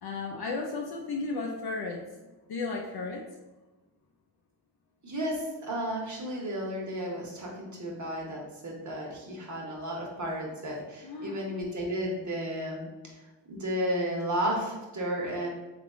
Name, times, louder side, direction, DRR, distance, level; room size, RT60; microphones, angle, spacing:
voice 1, 0.0-2.0 2.5-3.2 11.0-11.4, left 3 dB, 55° left, 0 dB, 0.6 m, -34 dB
voice 2, 5.0-13.1 13.5-15.5, equal, 35° right, -1 dB, 1.3 m, -33 dB
3.4 x 2.5 x 3.7 m, 1.1 s
supercardioid pair, 45°, 47 cm